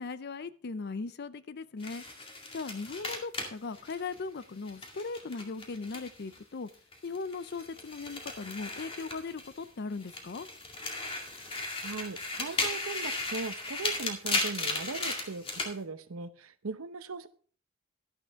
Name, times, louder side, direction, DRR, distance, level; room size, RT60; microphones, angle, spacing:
voice 1, 0.0-2.0 2.5-6.7 7.0-10.5, left 4 dB, 50° left, 15 dB, 0.5 m, -38 dB
sound 1, 1.8-6.4 6.7-9.7 10.0-15.7, left 2 dB, 25° left, 2.1 m, -36 dB
voice 2, 11.8-17.3, right 4 dB, 85° right, 11 dB, 0.9 m, -39 dB
12.0 x 10.5 x 3.5 m, 0.43 s
head